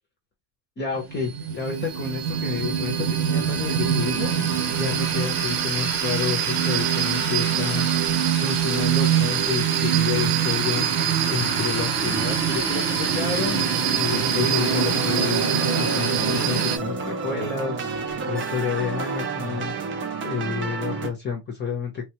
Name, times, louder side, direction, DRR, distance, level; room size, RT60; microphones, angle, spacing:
voice 1, 0.8-2.9 3.3-4.3 4.8-10.9 11.3-13.6 14.0-17.8 18.3-19.7 20.2-22.1, left 6 dB, 25° left, 0.7 m, -30 dB
sound 1, 0.9-16.8, right 8 dB, 90° right, 1.1 m, -23 dB
sound 2, 14.5-21.1, right 4 dB, 30° right, 0.5 m, -30 dB
3.6 x 2.3 x 2.9 m
cardioid pair, 155°, 45 cm